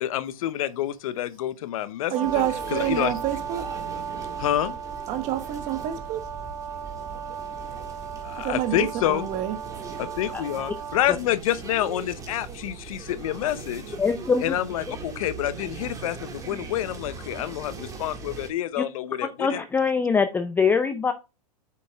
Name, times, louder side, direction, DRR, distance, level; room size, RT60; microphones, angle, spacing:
voice 1, 0.0-2.1 2.7-3.1 4.4-4.8 8.2-9.3 10.0-14.0 14.4-19.6, left 12 dB, 65° left, 0.8 m, -28 dB
voice 2, 2.1-3.8 5.1-6.3 7.8-8.1 8.4-9.6, right 12 dB, 40° right, 1.1 m, -28 dB
Brass instrument, 2.1-11.2, right 6 dB, 85° right, 1.0 m, -36 dB
sound 1, 2.2-18.5, right 5 dB, 20° right, 1.7 m, -40 dB
voice 3, 14.0-14.5 18.8-18.9 19.4-21.1, left 5 dB, 10° left, 0.5 m, -23 dB
7.7 x 6.1 x 2.3 m
hypercardioid pair, 125°, 19 cm